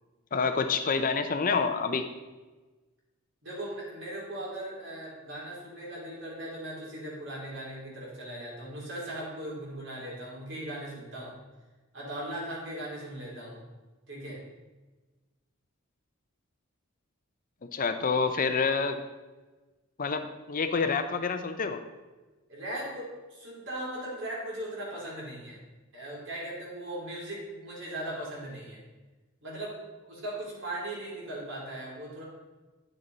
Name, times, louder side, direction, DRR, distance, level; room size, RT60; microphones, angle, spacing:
voice 1, 0.3-2.1 17.7-19.0 20.0-21.8, left 5 dB, 40° left, 8 dB, 0.6 m, -28 dB
voice 2, 3.4-11.4 11.9-13.7 14.1-14.4 22.5-25.6 25.9-28.8 29.4-32.2, right 1 dB, 60° right, -4 dB, 3.3 m, -38 dB
10.0 x 6.7 x 4.0 m, 1.2 s
head